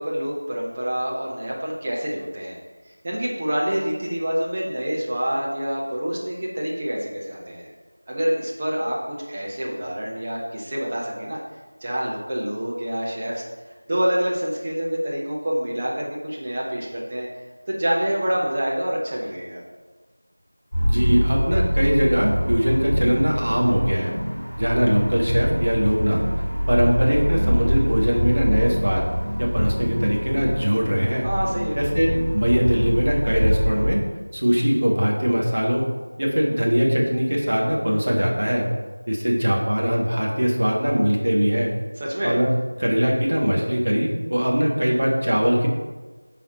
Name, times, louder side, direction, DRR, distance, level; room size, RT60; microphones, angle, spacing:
voice 1, 0.0-2.6 3.0-7.7 8.1-11.4 11.8-13.4 13.9-17.3 17.7-19.6 31.2-31.8 42.0-42.3, equal, 15° right, -5 dB, 0.6 m, -27 dB
sound 1, 20.7-33.9, equal, 15° left, 1.7 m, -24 dB
voice 2, 20.8-24.1 24.6-26.2 26.7-29.1 29.4-31.3 31.7-32.1 32.3-34.0 34.3-35.8 36.2-38.7 39.1-41.7 42.2-42.5 42.8-45.7, equal, 40° right, -2 dB, 1.4 m, -21 dB
9.9 x 4.2 x 4.0 m, 1.3 s
figure-of-eight pair, 175°, 0 cm